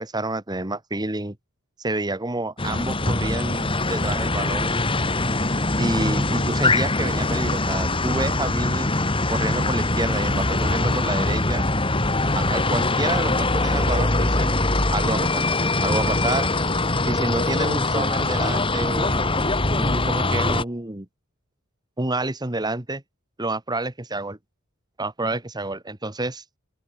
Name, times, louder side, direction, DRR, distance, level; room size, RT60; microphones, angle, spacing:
voice 1, 0.0-1.4 1.8-4.9 5.7-8.9 9.3-11.7 12.4-14.6 14.9-15.5 15.8-16.5 17.0-19.5 19.7-21.1 22.0-23.0 23.4-24.4 25.0-26.4, right 2 dB, 20° right, 1.7 m, -28 dB
sound 1, 2.6-20.6, left 2 dB, 25° left, 2.6 m, -22 dB
open air
head